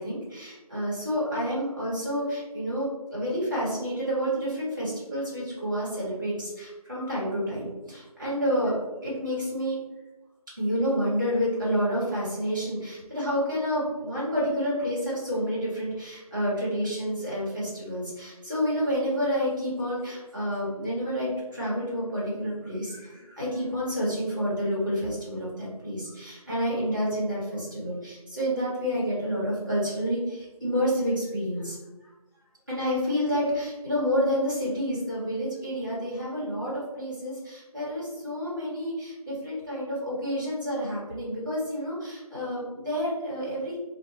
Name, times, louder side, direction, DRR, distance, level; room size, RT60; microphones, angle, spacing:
voice 1, 0.0-9.8 10.6-31.8 32.7-43.8, equal, 30° right, -8 dB, 0.9 m, -29 dB
2.7 x 2.3 x 2.7 m, 1.1 s
figure-of-eight pair, 180°, 20 cm